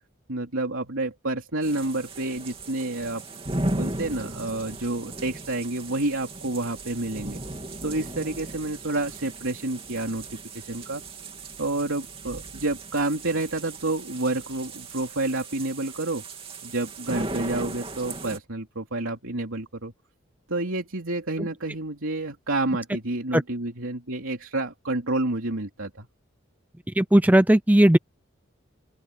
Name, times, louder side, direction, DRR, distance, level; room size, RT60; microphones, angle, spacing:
voice 1, 0.3-3.2 3.6-7.4 7.8-11.0 11.6-16.2 16.6-19.9 20.5-26.1, right 2 dB, 85° right, 3.2 m, -29 dB
sound 1, 1.6-18.4, right 2 dB, 30° right, 3.0 m, -36 dB
voice 2, 27.0-28.0, right 1 dB, 10° right, 0.5 m, -17 dB
open air
head